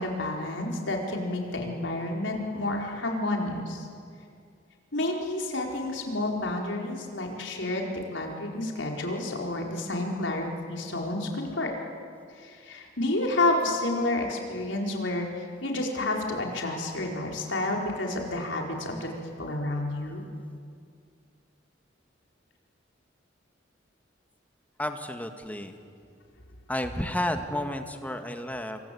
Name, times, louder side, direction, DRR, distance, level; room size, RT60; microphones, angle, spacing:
voice 1, 0.0-3.9 4.9-11.7 12.4-20.2, left 2 dB, 80° left, 1 dB, 4.7 m, -30 dB
voice 2, 24.8-25.8 26.7-28.8, left 1 dB, 10° left, 6 dB, 1.8 m, -31 dB
27.5 x 24.0 x 8.6 m, 2.3 s
head